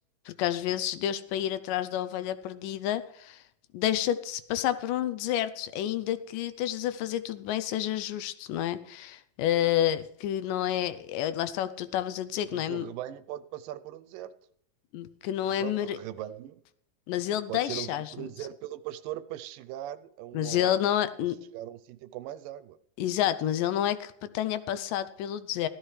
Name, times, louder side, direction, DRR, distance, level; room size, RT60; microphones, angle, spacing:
voice 1, 0.3-3.4 3.7-12.9 14.9-16.0 17.1-18.3 20.3-21.4 23.0-25.7, left 11 dB, 80° left, 13 dB, 2.2 m, -29 dB
voice 2, 12.5-14.3 15.5-16.6 17.5-20.8 21.5-22.8, right 12 dB, 85° right, 13 dB, 2.3 m, -39 dB
15.5 x 13.5 x 3.2 m, 0.68 s
omnidirectional pair, 3.9 m